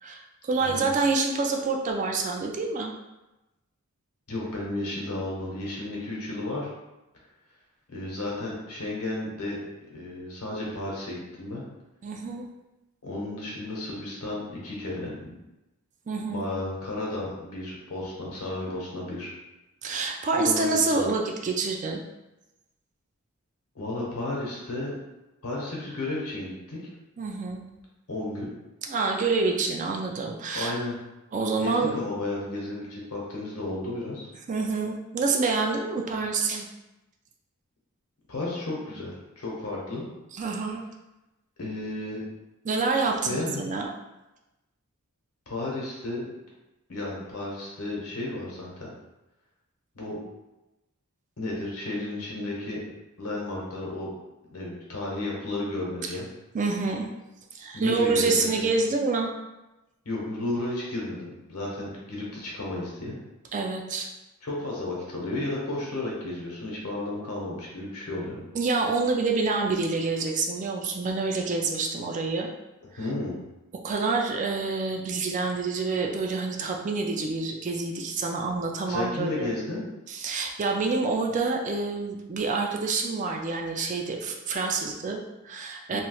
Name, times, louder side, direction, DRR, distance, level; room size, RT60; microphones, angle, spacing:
voice 1, 0.0-2.9 12.0-12.5 16.1-16.5 19.8-22.0 27.2-27.6 28.9-30.7 31.3-31.9 34.5-36.7 40.3-40.8 42.6-43.9 56.0-56.2 56.5-57.1 57.5-59.3 63.5-64.1 68.5-72.5 73.8-79.5 80.1-86.0, right 4 dB, 35° right, 2 dB, 0.3 m, -27 dB
voice 2, 4.3-6.7 7.9-9.6 9.9-11.6 13.0-15.3 16.3-19.3 20.3-21.0 23.7-24.9 25.4-26.9 28.1-28.5 30.5-31.0 31.6-34.3 38.3-40.0 41.6-42.2 43.2-43.6 45.5-46.2 46.9-48.9 49.9-50.2 51.4-52.8 53.2-54.1 54.5-56.3 57.7-58.7 60.0-63.2 64.4-68.4 73.0-73.4 78.9-79.8 85.9-86.0, left 2 dB, 80° left, -4 dB, 1.0 m, -33 dB
3.0 x 3.0 x 2.3 m, 1.0 s
head